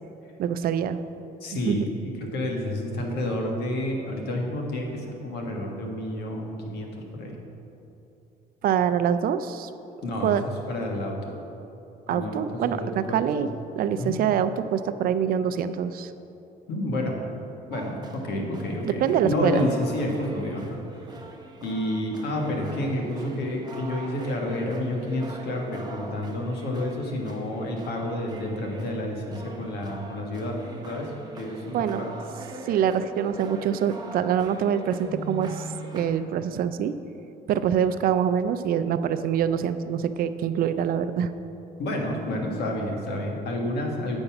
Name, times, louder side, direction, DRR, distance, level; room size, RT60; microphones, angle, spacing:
voice 1, 0.4-1.0 1.5-1.8 8.6-9.7 10.2-10.4 12.1-13.5 13.8-16.1 18.9-19.7 31.6-32.0 32.7-35.7 35.9-36.9 37.5-41.3, right 8 dB, 60° right, 11 dB, 0.4 m, -25 dB
voice 2, 1.4-6.9 7.2-7.3 10.0-10.3 10.7-11.3 12.1-13.3 14.0-14.2 16.7-17.2 17.7-21.2 21.6-30.6 30.8-32.2 41.8-44.2, left 1 dB, 75° left, 1 dB, 1.5 m, -30 dB
sound 1, 17.7-36.1, right 1 dB, 25° right, 0.9 m, -42 dB
Keyboard (musical), 35.0-36.9, right 3 dB, 30° left, 2.2 m, -39 dB
8.7 x 5.3 x 5.9 m, 2.9 s
cardioid pair, 110°, 17 cm